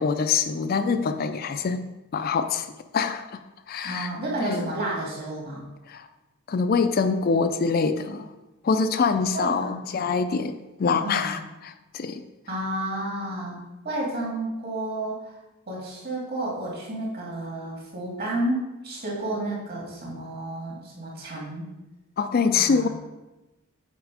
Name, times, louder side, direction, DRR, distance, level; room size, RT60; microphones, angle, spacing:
voice 1, 0.0-1.8 2.1-3.4 3.7-4.1 4.4-4.7 5.9-6.1 6.5-8.3 8.6-12.2 22.2-22.9, left 5 dB, 45° left, 10 dB, 0.4 m, -25 dB
voice 2, 3.8-5.6 9.3-9.8 10.2-10.4 11.0-11.3 12.5-13.6 13.8-15.4 15.7-21.7 22.5-22.9, right 1 dB, 45° right, -3 dB, 2.5 m, -31 dB
8.1 x 4.5 x 4.9 m, 1.0 s
head